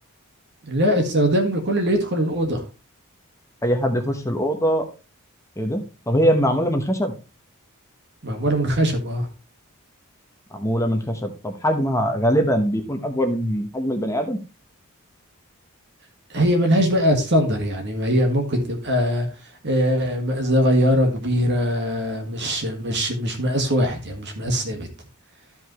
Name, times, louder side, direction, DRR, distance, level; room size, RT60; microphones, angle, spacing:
voice 1, 0.7-2.6 8.2-9.3 16.3-19.3 19.6-24.9, equal, 55° right, 4 dB, 1.7 m, -21 dB
voice 2, 3.6-4.9 5.6-7.1 10.5-14.4, equal, 15° left, 6 dB, 1.1 m, -22 dB
13.5 x 5.3 x 3.1 m, 0.30 s
head